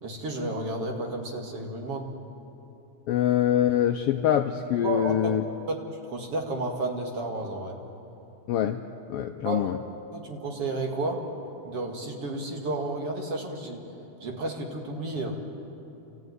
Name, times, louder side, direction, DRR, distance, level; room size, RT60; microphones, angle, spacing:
voice 1, 0.0-2.1 4.8-5.3 5.7-5.8 6.1-7.7 9.5-9.6 10.1-11.2 11.6-13.8 14.2-15.4, right 2 dB, 55° right, 2 dB, 3.0 m, -31 dB
voice 2, 3.1-5.4 8.5-8.8 9.1-9.8, left 10 dB, 75° left, 6 dB, 1.4 m, -24 dB
29.5 x 14.0 x 9.5 m, 2.9 s
omnidirectional pair, 3.3 m